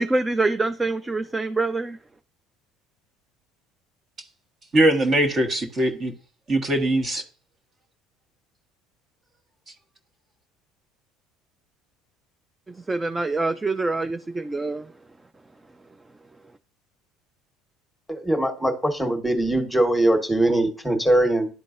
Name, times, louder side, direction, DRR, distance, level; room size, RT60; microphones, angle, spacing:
voice 1, 0.0-2.0 12.7-14.9, right 3 dB, 20° right, 0.4 m, -25 dB
voice 2, 4.7-6.1 6.5-7.2, right 1 dB, 35° right, 1.4 m, -21 dB
voice 3, 18.1-21.5, right 1 dB, ahead, 1.4 m, -21 dB
11.0 x 3.7 x 2.6 m
hypercardioid pair, 75°, 0 cm